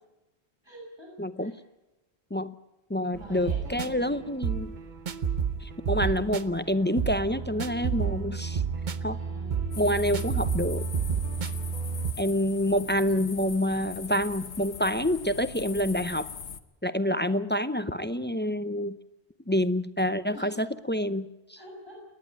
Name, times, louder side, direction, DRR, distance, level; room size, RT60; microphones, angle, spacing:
voice 1, 0.6-1.6 3.1-4.2 8.9-9.7 20.3-20.6 21.6-22.0, right 1 dB, 25° right, -2 dB, 7.7 m, -47 dB
voice 2, 1.2-1.5 2.3-2.5 2.9-4.7 5.6-8.6 9.0-9.2 9.8-10.8 12.2-16.3 16.8-19.0 19.5-21.6, equal, 15° left, 12 dB, 0.5 m, -27 dB
sound 1, 3.1-12.1, right 6 dB, 50° right, 0.9 m, -31 dB
sound 2, 9.7-16.6, left 7 dB, 80° left, 1.2 m, -41 dB
28.5 x 10.5 x 9.6 m, 0.99 s
omnidirectional pair, 1.1 m